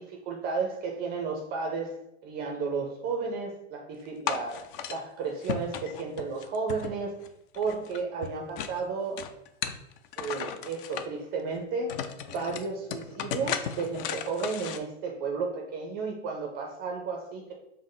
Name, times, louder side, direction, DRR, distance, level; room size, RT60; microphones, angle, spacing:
voice 1, 0.0-2.0 2.2-7.2 7.6-9.3 10.2-12.0 12.3-17.5, right 4 dB, 25° right, 2 dB, 0.4 m, -33 dB
sound 1, 4.3-5.0 5.4-7.3 7.5-8.8 9.2-11.1 11.6-11.7 11.9-14.8, left 8 dB, 50° left, 0.4 m, -35 dB
5.2 x 2.0 x 3.6 m, 0.86 s
supercardioid pair, 135°, 37 cm